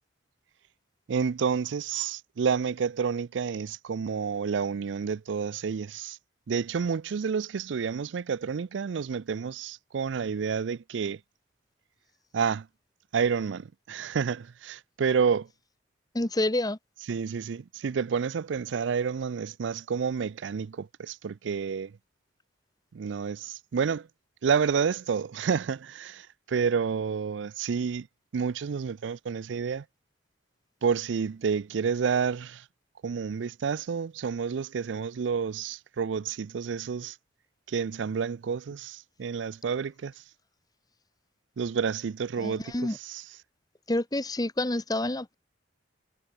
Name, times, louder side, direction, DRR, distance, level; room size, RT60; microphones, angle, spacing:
voice 1, 1.1-6.2 6.5-11.2 12.3-12.7 13.1-15.5 17.1-21.9 22.9-24.1 24.4-28.1 28.3-29.8 30.8-32.6 33.0-37.2 37.7-40.1 41.6-43.2, right 6 dB, 80° right, 0.4 m, -29 dB
voice 2, 16.1-16.8 42.4-43.0 43.9-45.3, left 1 dB, 20° left, 1.3 m, -28 dB
head